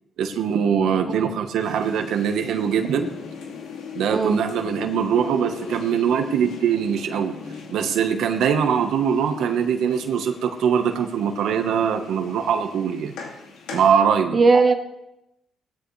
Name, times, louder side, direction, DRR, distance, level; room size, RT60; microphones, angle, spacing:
voice 1, 0.2-3.1 3.9-7.4 7.7-13.1 13.7-14.4, right 7 dB, 80° right, 6 dB, 1.2 m, -22 dB
sound 1, 1.6-13.9, left 5 dB, 90° left, 2.5 m, -39 dB
voice 2, 14.3-14.7, right 4 dB, 35° right, 6 dB, 1.2 m, -18 dB
18.0 x 13.0 x 3.3 m, 0.88 s
cardioid pair, 90°, 0 cm